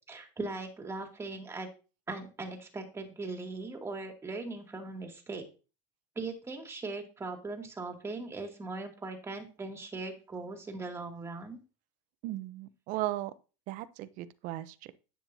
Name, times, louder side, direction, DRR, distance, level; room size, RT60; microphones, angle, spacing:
voice 1, 0.1-1.7 2.1-5.4 6.2-11.6, right 3 dB, 15° right, 2.5 m, -39 dB
voice 2, 12.2-13.3 13.7-14.9, right 15 dB, 60° right, 0.8 m, -36 dB
10.0 x 8.7 x 2.8 m
supercardioid pair, 125°, 16 cm